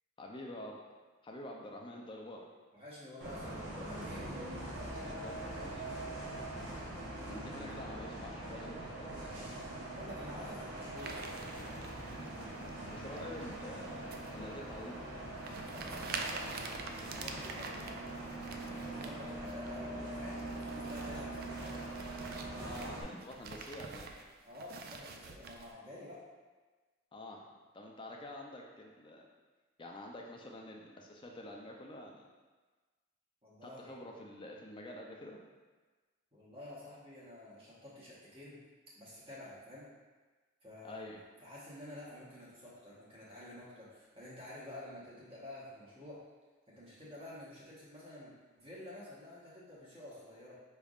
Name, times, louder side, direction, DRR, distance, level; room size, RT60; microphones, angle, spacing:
voice 1, 0.2-0.8 1.2-2.5 5.0-5.9 7.3-9.3 12.9-14.1 14.3-15.0 22.6-24.1 27.1-27.4 27.7-29.3 29.8-32.3 33.6-35.4 40.8-41.2, left 1 dB, 25° left, 0 dB, 0.4 m, -47 dB
voice 2, 2.7-4.3 6.8-7.5 9.9-11.2 15.7-17.9 18.6-21.9 24.4-26.2 33.4-34.0 36.3-38.6 38.9-39.9 40.6-46.2 46.7-50.5, left 1 dB, 30° right, -8 dB, 1.1 m, -50 dB
Bus, 3.2-23.0, right 1 dB, 65° right, 1.0 m, -43 dB
sound 1, 11.0-12.7 13.2-13.6 14.1-14.3 14.8-14.9 15.4-19.1 19.5-19.7 20.1-25.7, right 4 dB, 45° right, 0.3 m, -46 dB
5.1 x 3.4 x 2.4 m, 1.3 s
head